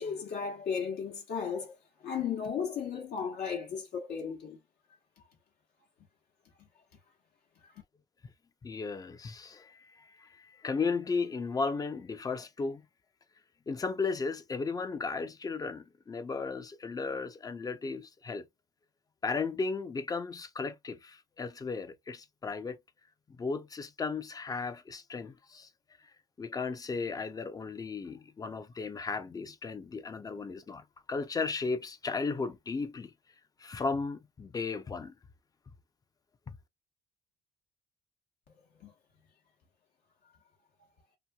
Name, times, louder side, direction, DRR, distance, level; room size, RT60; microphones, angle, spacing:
voice 1, 0.0-1.7 2.0-4.6 38.8-38.9, left 6 dB, 70° left, 1.1 m, -35 dB
voice 2, 8.6-12.8 13.7-18.5 19.2-22.8 23.4-25.7 26.4-33.1 33.6-35.1 36.5-36.6, left 4 dB, 20° left, 0.5 m, -35 dB
3.0 x 2.7 x 2.2 m
cardioid pair, 110°, 17 cm